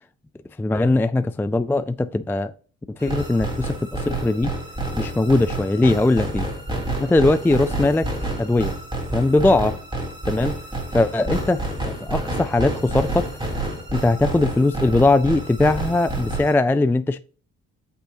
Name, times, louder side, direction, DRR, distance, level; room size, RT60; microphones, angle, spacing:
voice 1, 0.6-2.5 3.0-4.5 5.0-6.5 7.0-8.1 8.4-8.7 9.1-9.8 10.3-10.6 10.9-13.3 13.9-17.2, left 2 dB, 5° left, 0.3 m, -20 dB
sound 1, 3.0-16.5, right 2 dB, 15° right, 3.1 m, -29 dB
8.4 x 6.1 x 2.8 m
cardioid pair, 90°, 30 cm